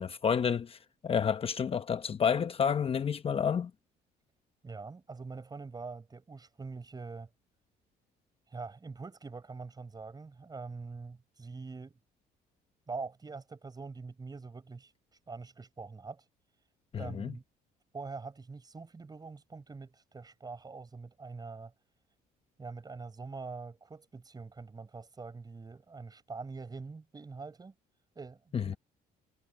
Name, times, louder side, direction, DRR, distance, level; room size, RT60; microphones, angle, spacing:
voice 1, 0.0-3.7 16.9-17.3 28.5-28.8, left 7 dB, 35° left, 0.9 m, -30 dB
voice 2, 4.6-7.3 8.5-12.0 12.9-14.9 15.3-16.2 17.0-17.4 17.9-21.7 22.6-27.7 28.2-28.8, right 4 dB, 25° right, 5.7 m, -44 dB
cardioid pair, 110°, 17 cm